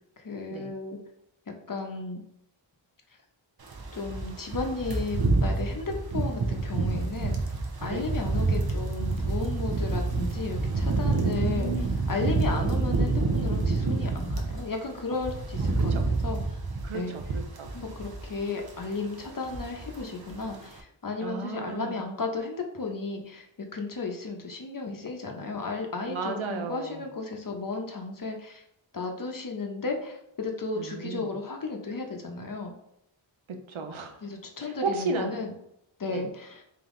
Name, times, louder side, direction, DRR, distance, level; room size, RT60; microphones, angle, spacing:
voice 1, 0.2-1.0 1.5-2.2 3.9-7.4 7.8-16.6 16.9-17.1 17.7-28.6 28.9-32.7 34.2-35.5 36.0-36.6, left 3 dB, 45° left, 2 dB, 0.8 m, -34 dB
sound 1, 3.7-14.6 15.0-18.4 18.6-18.9 19.2-20.0 20.3-20.5, right 3 dB, 50° right, 0.8 m, -28 dB
voice 2, 11.1-12.0 15.8-16.0 16.8-17.7 21.2-22.0 26.1-27.0 30.7-31.3 33.7-34.2 34.6-35.3 36.1-36.2, right 4 dB, 80° right, 4 dB, 0.7 m, -34 dB
3.5 x 2.9 x 3.7 m, 0.77 s
wide cardioid pair, 50°, 47 cm